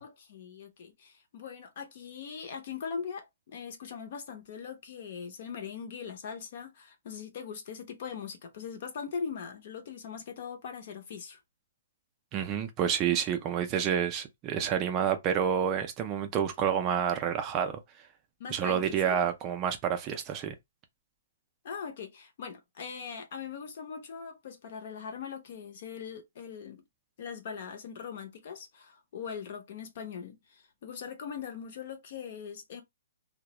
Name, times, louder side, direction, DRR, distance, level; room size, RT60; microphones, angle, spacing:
voice 1, 0.0-11.4 18.4-19.2 21.6-26.8 27.2-32.8, left 6 dB, 40° left, 0.5 m, -41 dB
voice 2, 12.3-17.8 18.5-20.5, right 8 dB, 15° right, 0.4 m, -29 dB
2.2 x 2.0 x 2.8 m
hypercardioid pair, 175°, 0 cm